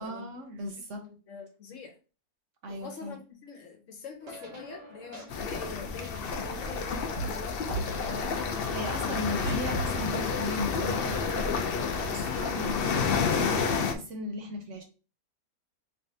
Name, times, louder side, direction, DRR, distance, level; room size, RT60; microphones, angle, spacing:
voice 1, 0.0-1.1 2.6-3.2 8.7-11.7 12.1-14.8, equal, 60° right, 0.9 m, -37 dB
voice 2, 0.8-1.9 2.7-8.4, left 5 dB, 60° left, 1.1 m, -44 dB
sound 1, 4.2-12.5, right 2 dB, 80° right, 1.4 m, -42 dB
sound 2, 5.3-13.9, left 5 dB, 75° left, 0.5 m, -30 dB
3.4 x 3.3 x 2.7 m
omnidirectional pair, 1.6 m